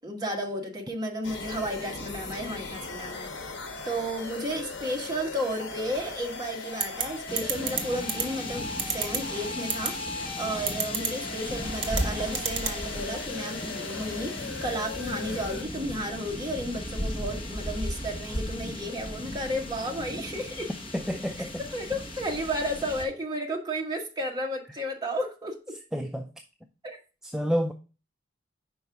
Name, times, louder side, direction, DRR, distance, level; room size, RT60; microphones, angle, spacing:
voice 1, 0.0-3.3 3.8-8.7 8.9-20.7 21.7-25.7 26.8-27.0, equal, 20° right, 1.3 m, -33 dB
sound 1, 1.2-15.6, left 3 dB, 75° left, 1.0 m, -39 dB
sound 2, 6.8-7.0 7.4-7.8 8.1-8.2 8.8-9.2 9.7-9.9 10.7-11.1 11.8-12.0 12.3-12.7, right 7 dB, 80° right, 1.1 m, -27 dB
sound 3, 7.3-23.0, left 1 dB, 30° left, 1.2 m, -36 dB
voice 2, 20.9-21.6 25.9-26.3 27.2-27.7, equal, 5° right, 0.4 m, -29 dB
5.4 x 4.7 x 4.6 m
head